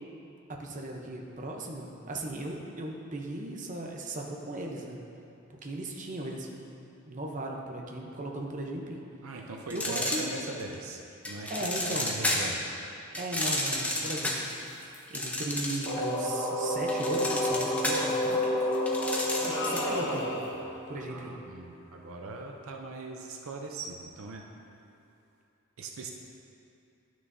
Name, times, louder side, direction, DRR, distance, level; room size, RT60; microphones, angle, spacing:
voice 1, 0.5-5.0 5.6-6.5 7.1-9.0 9.7-10.3 11.5-12.5 13.2-18.4 19.4-20.3 20.9-21.4, right 1 dB, 35° right, 0 dB, 0.7 m, -37 dB
voice 2, 9.2-11.5 11.8-12.6 21.1-24.4 25.8-26.1, right 3 dB, 75° right, 2 dB, 0.6 m, -40 dB
sound 1, 9.7-10.7 11.3-12.6 13.1-16.1 16.4-20.0, left 1 dB, 5° left, 0.7 m, -32 dB
sound 2, 15.9-21.6, left 1 dB, 30° left, 1.2 m, -30 dB
sound 3, 19.4-20.8, left 1 dB, 60° left, 1.0 m, -34 dB
11.5 x 6.2 x 2.7 m, 2.7 s
head